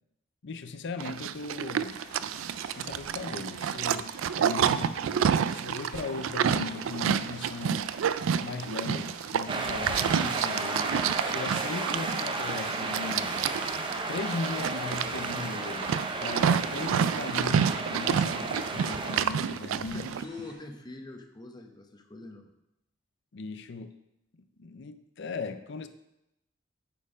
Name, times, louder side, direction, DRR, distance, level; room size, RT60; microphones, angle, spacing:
voice 1, 0.4-2.0 2.7-4.1 4.4-5.2 5.5-7.9 8.4-10.9 11.2-13.4 14.1-16.0 16.2-20.1 23.3-24.0 24.4-25.9, left 4 dB, 60° left, 10 dB, 0.5 m, -38 dB
Livestock farm animals working animals, 1.0-20.2, right 8 dB, 75° right, 0.3 m, -29 dB
sound 1, 1.8-20.5, right 1 dB, 60° right, 3.3 m, -50 dB
sound 2, 9.5-19.2, right 3 dB, 25° right, 0.6 m, -33 dB
voice 2, 19.8-22.5, left 2 dB, 20° left, 4 dB, 0.8 m, -44 dB
8.6 x 4.5 x 4.9 m, 0.87 s
head